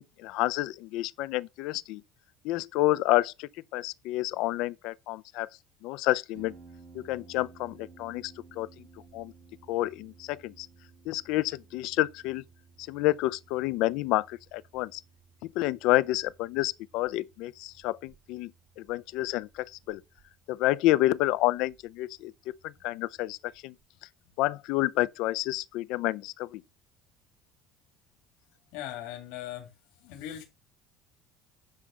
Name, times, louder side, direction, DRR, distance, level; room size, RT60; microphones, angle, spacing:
voice 1, 0.0-2.0 2.4-5.5 5.8-6.5 6.9-8.7 9.1-9.3 9.7-10.7 11.1-12.4 12.9-15.0 15.6-18.5 18.8-20.0 20.5-22.3 22.8-23.4 23.6-23.7 24.4-26.6, left 17 dB, 70° left, 0.4 m, -29 dB
Harp, 6.3-23.8, right 4 dB, 65° right, 4.7 m, -57 dB
voice 2, 28.7-29.7 30.0-30.4, left 12 dB, 85° left, 2.3 m, -39 dB
9.7 x 3.3 x 6.3 m
cardioid pair, 150°, 0 cm